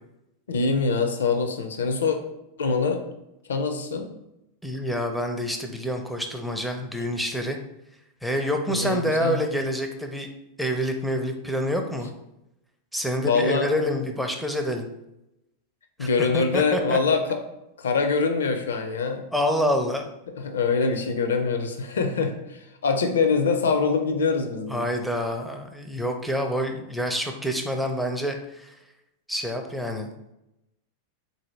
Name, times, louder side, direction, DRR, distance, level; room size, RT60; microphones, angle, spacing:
voice 1, 0.5-2.2 2.6-3.0 3.5-4.1 8.7-9.4 13.2-13.7 16.0-17.4 17.8-19.3 20.4-24.9, left 4 dB, 65° left, 6 dB, 0.5 m, -24 dB
voice 2, 4.6-7.6 8.2-10.3 10.6-12.1 12.9-14.9 16.0-16.1 16.3-17.0 19.3-20.1 24.7-28.7 29.3-30.1, equal, ahead, 3 dB, 0.5 m, -27 dB
3.9 x 2.7 x 3.1 m, 0.88 s
figure-of-eight pair, 90°, 0 cm